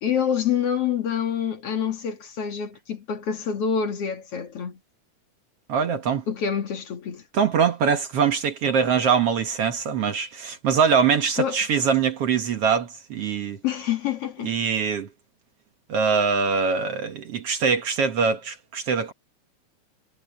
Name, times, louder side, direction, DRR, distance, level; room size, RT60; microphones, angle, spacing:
voice 1, 0.0-4.8 6.3-7.2 11.4-11.6 13.6-14.5, left 8 dB, 55° left, 2.6 m, -26 dB
voice 2, 5.7-6.2 7.3-13.6 14.4-15.1 15.9-19.1, right 6 dB, 55° right, 2.0 m, -23 dB
omnidirectional pair, 3.5 m